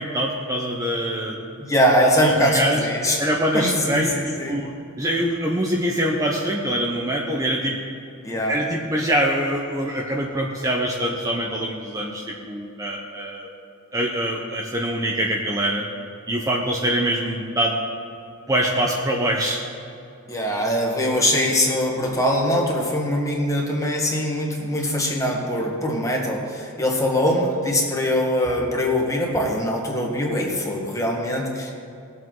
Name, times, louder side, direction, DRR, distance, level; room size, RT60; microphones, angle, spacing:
voice 1, 0.0-1.4 2.2-2.8 3.2-4.7 5.0-7.8 8.3-13.5 13.9-15.8 16.3-17.8 18.5-19.6 20.3-20.4, right 1 dB, 15° right, -1 dB, 0.9 m, -24 dB
voice 2, 1.6-3.2 3.5-4.6 8.2-8.6 20.3-31.7, equal, 15° left, -1 dB, 1.8 m, -22 dB
20.0 x 7.7 x 3.9 m, 2.6 s
head